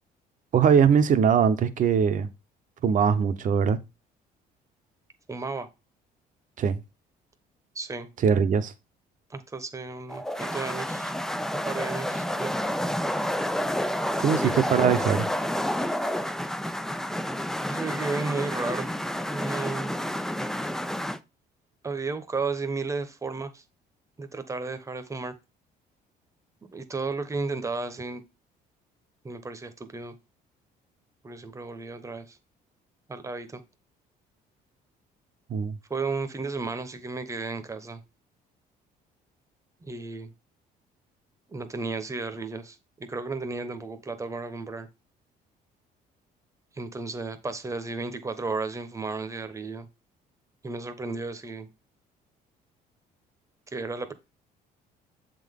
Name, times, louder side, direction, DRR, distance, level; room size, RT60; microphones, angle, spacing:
voice 1, 0.5-2.3 2.8-3.8 6.6-6.8 8.2-8.7 14.2-15.3 35.5-35.8, right 7 dB, 50° right, 0.8 m, -21 dB
voice 2, 5.3-5.7 7.7-8.1 9.3-11.1 11.6-12.5 14.4-14.6 17.7-18.9 19.3-19.9 21.8-23.6 24.2-25.3 26.7-28.2 29.2-30.1 31.2-32.4 33.1-33.6 35.9-38.0 39.8-40.3 41.5-44.9 46.7-49.9 50.6-51.7 53.7-54.1, right 3 dB, 20° right, 0.9 m, -33 dB
sound 1, 10.1-21.2, equal, 5° left, 0.3 m, -29 dB
7.2 x 3.8 x 3.6 m
cardioid pair, 110°, 17 cm